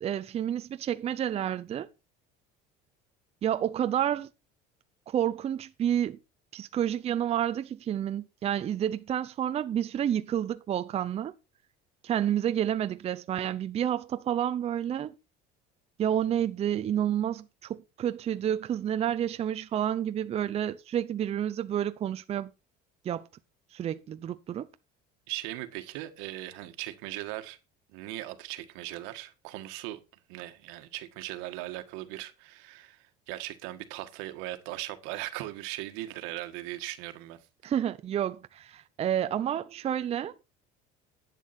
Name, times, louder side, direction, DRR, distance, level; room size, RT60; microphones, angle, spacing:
voice 1, 0.0-1.9 3.4-4.3 5.1-6.2 6.5-11.3 12.0-15.2 16.0-22.5 23.0-23.3 23.7-24.7 37.6-40.3, right 10 dB, 30° right, 0.6 m, -29 dB
voice 2, 25.3-27.6 27.9-30.0 30.3-37.4, right 16 dB, 90° right, 1.7 m, -39 dB
11.0 x 8.4 x 4.3 m
cardioid pair, 140°, 20 cm